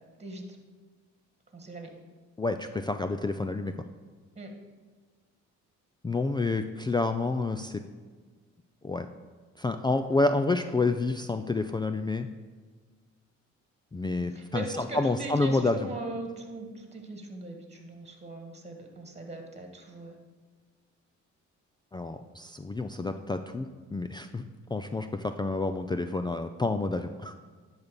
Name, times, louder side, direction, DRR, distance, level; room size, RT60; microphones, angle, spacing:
voice 1, 1.5-1.9 4.4-4.5 14.3-20.1, right 2 dB, 20° right, 3 dB, 1.8 m, -39 dB
voice 2, 2.4-3.7 6.0-7.8 8.8-9.1 9.6-12.3 13.9-15.9 21.9-24.4 24.7-27.3, left 3 dB, 15° left, 8 dB, 0.4 m, -29 dB
10.5 x 4.1 x 6.9 m, 1.4 s
cardioid pair, 90°, 30 cm